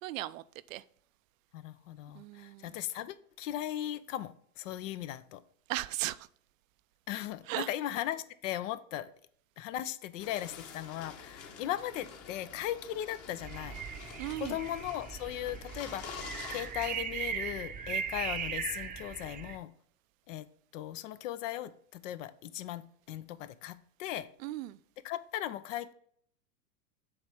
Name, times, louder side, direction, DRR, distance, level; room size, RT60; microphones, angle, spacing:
voice 1, 0.0-0.8 2.1-2.7 5.7-6.3 7.5-7.7 14.2-14.6 24.4-24.8, right 16 dB, 70° right, 16 dB, 0.5 m, -37 dB
voice 2, 1.5-5.4 7.1-9.1 9.6-13.8 14.4-19.7 20.3-20.5 20.7-24.3 25.0-25.9, left 12 dB, 65° left, 14 dB, 0.7 m, -38 dB
sound 1, 10.2-17.0, left 6 dB, 35° left, 1.3 m, -48 dB
sound 2, 13.4-19.6, right 7 dB, 20° right, 0.7 m, -39 dB
7.9 x 3.2 x 5.4 m, 0.62 s
hypercardioid pair, 105°, 42 cm